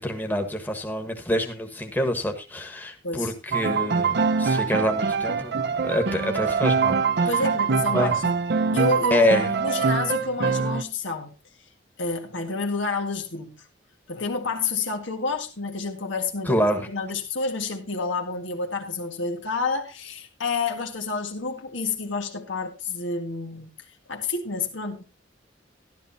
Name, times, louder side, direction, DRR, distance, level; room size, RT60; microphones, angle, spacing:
voice 1, 0.0-7.3 7.9-8.1 9.1-9.5 16.5-16.9, left 1 dB, 10° left, 1.4 m, -26 dB
Piano, 3.5-10.8, right 5 dB, 60° right, 0.6 m, -24 dB
voice 2, 7.3-8.4 8.7-11.3 12.0-13.5 14.1-23.7 24.1-25.0, left 3 dB, 90° left, 1.9 m, -29 dB
12.5 x 12.0 x 2.8 m
head